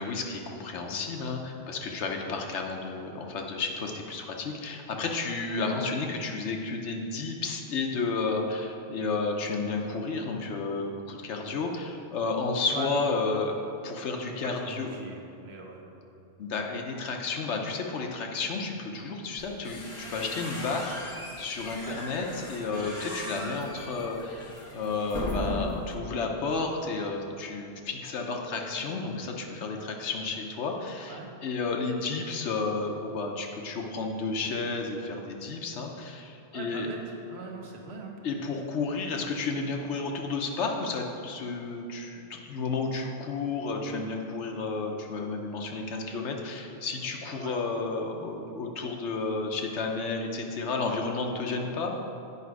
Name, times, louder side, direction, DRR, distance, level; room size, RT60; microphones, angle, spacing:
voice 1, 0.0-13.6 13.8-15.1 16.4-36.9 38.2-51.9, left 3 dB, 80° left, 2 dB, 1.1 m, -32 dB
voice 2, 14.2-15.8 21.8-22.0 31.1-31.3 36.5-37.0 37.3-38.2 47.4-47.6, right 4 dB, 65° right, 0 dB, 1.2 m, -41 dB
sound 1, 19.4-25.9, left 2 dB, 30° left, 1.2 m, -38 dB
8.4 x 5.0 x 4.7 m, 2.7 s
omnidirectional pair, 1.2 m